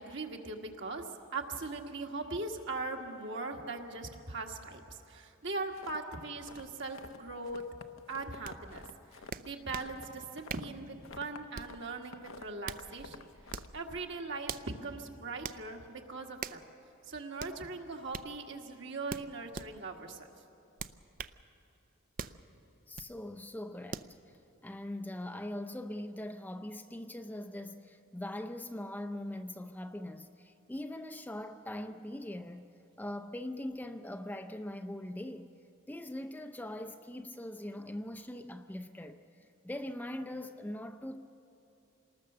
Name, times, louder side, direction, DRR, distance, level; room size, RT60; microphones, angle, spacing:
voice 1, 0.0-7.6 8.1-8.8 9.1-16.6 17.1-20.3, right 3 dB, 60° right, 1.8 m, -40 dB
sound 1, 5.7-7.2 7.4-11.8 12.0-14.0, left 4 dB, 70° left, 0.9 m, -51 dB
sound 2, 8.4-8.6 9.3-9.9 10.5-10.8 11.5-11.8 12.4-12.9 13.5-13.8 14.5-14.7 15.4-15.6 16.4-16.6 17.4-17.6 18.1-18.3 19.1-19.7 20.8-21.4 22.2-22.4 22.9-23.1 23.9-24.1, right 6 dB, 45° right, 0.5 m, -41 dB
voice 2, 22.9-24.2 24.6-32.7 33.0-35.5 35.9-41.4, left 1 dB, 10° left, 0.5 m, -41 dB
27.5 x 20.0 x 6.8 m
head